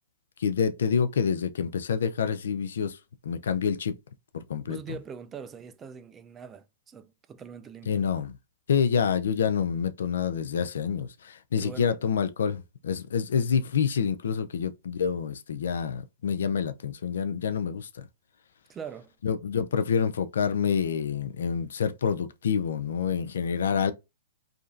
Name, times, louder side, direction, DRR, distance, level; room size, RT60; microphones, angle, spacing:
voice 1, 0.4-3.0 3.2-3.9 4.3-4.8 7.9-8.3 8.7-18.1 19.2-23.9, left 7 dB, 80° left, 0.4 m, -27 dB
voice 2, 4.7-8.0 11.6-11.9 18.7-19.1, right 6 dB, 20° right, 0.3 m, -42 dB
2.8 x 2.5 x 2.5 m
hypercardioid pair, 135°, 0 cm